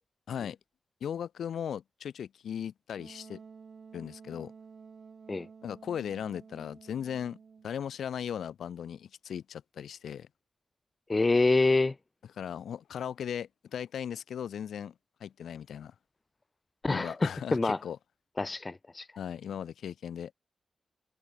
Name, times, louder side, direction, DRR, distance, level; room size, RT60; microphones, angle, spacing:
voice 1, 1.0-3.4 3.9-4.5 5.6-7.4 7.6-10.3 12.4-14.9 15.2-15.9 16.9-18.0 19.2-20.3, left 8 dB, 90° left, 4.2 m, -37 dB
Wind instrument woodwind instrument, 3.0-7.8, right 5 dB, 60° right, 3.7 m, -52 dB
voice 2, 11.1-11.9 16.8-17.8 18.4-19.1, left 3 dB, 30° left, 0.5 m, -26 dB
cardioid pair, 70°, 0 cm